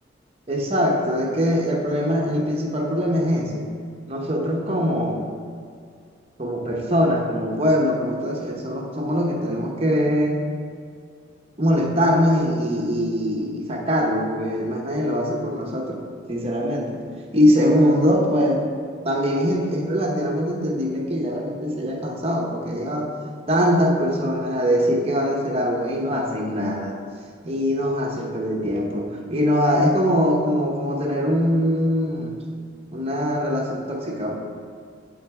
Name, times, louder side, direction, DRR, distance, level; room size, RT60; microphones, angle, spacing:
voice 1, 0.5-3.7 4.1-5.2 6.4-10.4 11.6-17.0 17.3-18.7 19.0-23.1 23.5-27.0 27.4-32.3 32.9-34.4, equal, 30° right, 0 dB, 0.9 m, -22 dB
10.5 x 4.0 x 3.6 m, 2.2 s
head